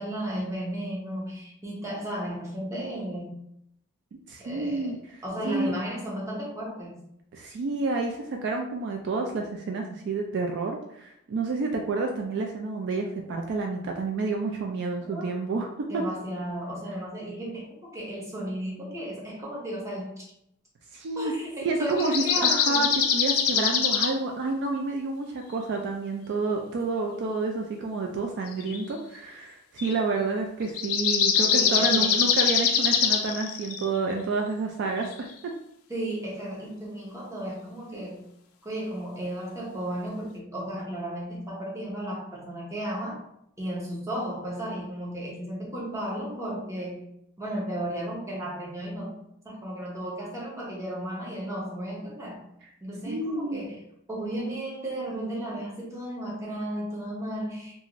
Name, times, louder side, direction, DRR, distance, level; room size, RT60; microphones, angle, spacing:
voice 1, 0.0-3.4 4.4-4.9 5.2-7.0 15.1-15.3 15.9-20.2 21.2-22.9 31.5-32.2 35.9-38.3 38.6-43.2 43.6-47.0 47.4-49.2 49.4-52.4 52.8-53.8 54.1-57.8, right 1 dB, 15° right, -4 dB, 0.7 m, -34 dB
voice 2, 4.3-5.0 5.4-5.7 7.3-16.0 20.9-21.3 21.6-35.3 53.1-53.6, right 3 dB, 55° right, 2 dB, 0.3 m, -29 dB
sound 1, 21.9-24.1 28.5-28.8 29.8-29.9 30.7-33.9 35.0-35.1, left 7 dB, 80° left, 0.4 m, -23 dB
2.5 x 2.4 x 2.9 m, 0.75 s
head